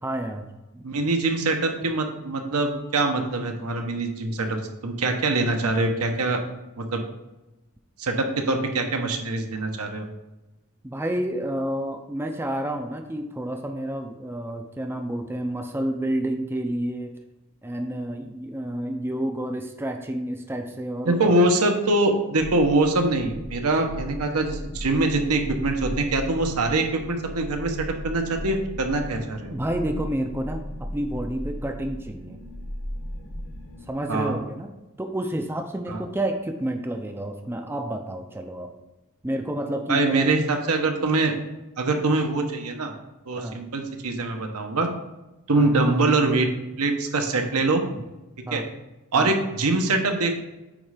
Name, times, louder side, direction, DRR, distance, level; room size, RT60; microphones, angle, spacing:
voice 1, 0.0-0.9 10.8-17.1 17.6-21.4 29.5-32.4 33.9-34.7 35.0-38.7 39.2-40.3 43.4-43.6 45.5-45.7 47.5-47.6 48.5-48.6 49.1-49.3, right 1 dB, 10° right, 5 dB, 0.5 m, -30 dB
voice 2, 0.8-6.4 6.8-7.0 8.0-10.1 21.0-29.6 34.1-34.4 35.9-36.0 39.9-41.3 41.8-42.9 43.3-44.9 45.5-46.5 46.8-47.8 48.5-48.6 49.1-50.4, right 2 dB, 80° right, 4 dB, 1.0 m, -23 dB
sound 1, 22.4-33.9, equal, 70° left, 1.2 m, -37 dB
8.8 x 3.2 x 4.9 m, 1.0 s
head